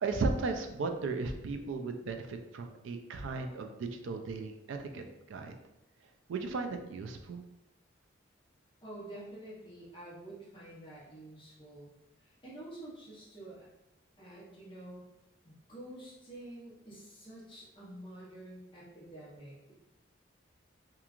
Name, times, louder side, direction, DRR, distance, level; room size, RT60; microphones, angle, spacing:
voice 1, 0.0-5.5 6.3-7.4, right 3 dB, 65° right, 5 dB, 0.3 m, -36 dB
voice 2, 8.8-11.9 12.2-13.7 14.2-15.0 15.4-19.7, right 1 dB, 25° left, -7 dB, 0.8 m, -48 dB
2.9 x 2.3 x 2.4 m, 0.93 s
head